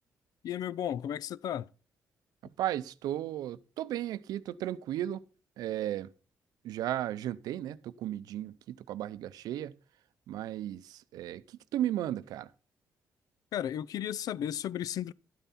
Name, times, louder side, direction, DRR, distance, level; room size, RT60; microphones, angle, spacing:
voice 1, 0.4-1.7 13.5-15.1, left 10 dB, 75° left, 0.5 m, -34 dB
voice 2, 2.6-5.2 5.6-6.1 6.6-9.7 10.3-12.5, right 12 dB, 90° right, 0.6 m, -35 dB
12.0 x 9.1 x 4.2 m
cardioid pair, 75°, 6 cm